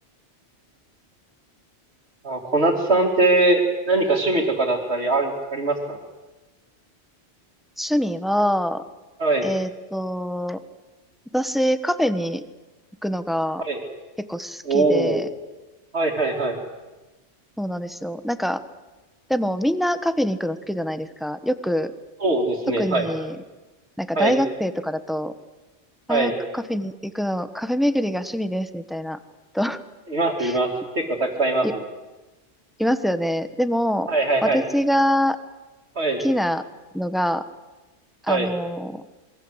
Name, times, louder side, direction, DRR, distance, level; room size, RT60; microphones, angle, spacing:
voice 1, 2.2-3.6 3.9-6.0 9.2-9.5 13.6-13.8 14.6-15.2 15.9-16.6 22.2-23.1 24.1-24.4 26.1-26.3 30.1-31.8 34.1-34.6 36.0-36.2 38.3-38.5, right 2 dB, 65° right, -4 dB, 3.2 m, -21 dB
voice 2, 7.8-8.8 9.4-10.6 11.3-12.4 13.0-13.6 14.2-15.3 17.6-18.6 19.3-21.9 22.8-23.4 24.0-25.3 26.1-29.2 29.5-29.8 30.4-30.6 31.6-31.7 32.8-34.1 34.4-35.4 36.2-36.6 36.9-37.4 38.2-39.0, equal, ahead, 11 dB, 1.2 m, -24 dB
27.0 x 22.5 x 8.1 m, 1.2 s
omnidirectional pair, 1.1 m